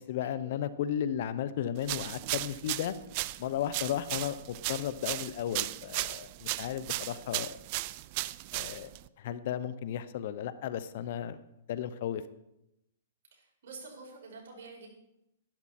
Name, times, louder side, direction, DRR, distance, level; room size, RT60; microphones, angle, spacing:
voice 1, 0.0-2.9 3.4-7.6 8.5-8.9 9.2-11.4 11.7-12.2, left 10 dB, 55° left, 14 dB, 0.8 m, -34 dB
sound 1, 1.8-9.1, right 19 dB, 40° right, 0.4 m, -36 dB
voice 2, 13.3-15.0, right 4 dB, 65° right, -2 dB, 5.6 m, -48 dB
12.0 x 12.0 x 4.3 m, 0.84 s
hypercardioid pair, 150°, 0 cm